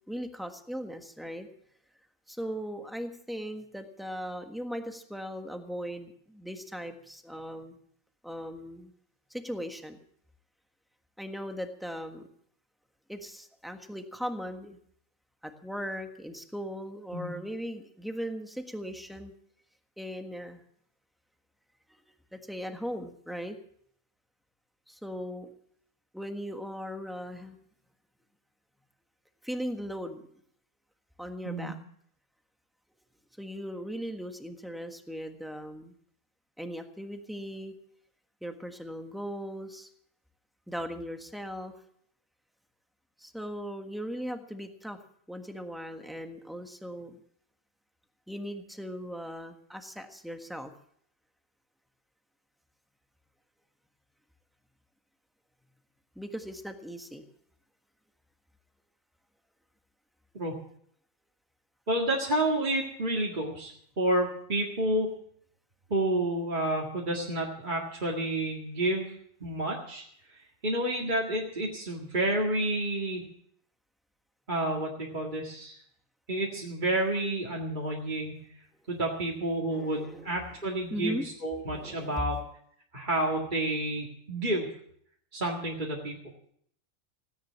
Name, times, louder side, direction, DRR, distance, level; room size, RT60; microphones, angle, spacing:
voice 1, 0.1-1.5 2.3-7.8 8.2-8.9 9.3-10.0 11.2-12.3 13.1-14.8 15.4-19.3 20.0-20.6 21.9-22.0 22.3-23.6 24.9-25.5 26.1-27.6 29.4-30.2 31.2-31.7 33.4-35.9 36.6-37.7 38.4-39.9 40.7-41.7 43.2-45.0 45.3-47.2 48.3-50.7 56.1-57.2 79.6-80.3 80.9-81.2 81.7-82.3, equal, ahead, 5 dB, 1.4 m, -38 dB
voice 2, 61.9-65.1 65.9-69.1 69.4-73.2 74.5-75.8 76.3-78.4 78.9-82.4 82.9-84.7 85.3-86.2, right 1 dB, 35° right, -2 dB, 2.2 m, -30 dB
17.0 x 10.0 x 7.4 m, 0.65 s
omnidirectional pair, 1.3 m